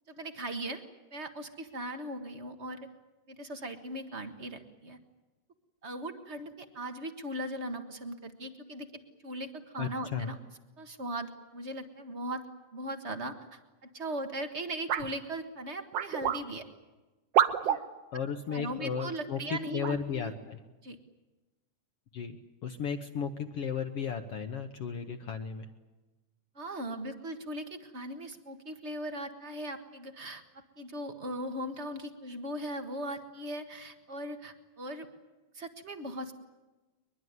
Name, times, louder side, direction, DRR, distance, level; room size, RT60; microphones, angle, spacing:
voice 1, 0.1-0.8 1.1-2.8 3.3-5.0 5.8-10.4 10.8-12.4 12.7-16.6 17.6-17.8 18.5-20.3 20.8-21.0 26.5-35.1 35.5-36.3, right 1 dB, 40° right, 6 dB, 1.0 m, -39 dB
voice 2, 9.8-10.3 17.7-17.8 18.1-20.6 22.1-22.4 22.6-25.7, left 7 dB, 60° left, 6 dB, 1.8 m, -35 dB
sound 1, 14.9-15.1 15.9-16.4 17.3-17.8 18.9-19.1 19.8-20.0, right 9 dB, 65° right, 1.8 m, -27 dB
22.5 x 22.0 x 9.6 m, 1.1 s
omnidirectional pair, 3.6 m